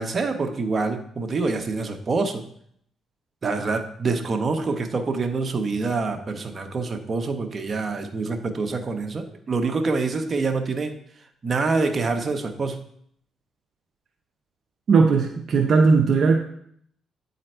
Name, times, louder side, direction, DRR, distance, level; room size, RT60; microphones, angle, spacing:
voice 1, 0.0-2.4 3.4-10.9 11.4-12.8, right 3 dB, 40° right, 5 dB, 1.0 m, -26 dB
voice 2, 14.9-16.4, right 4 dB, 55° right, 2 dB, 0.7 m, -18 dB
8.8 x 4.0 x 4.4 m, 0.65 s
cardioid pair, 90°, 0 cm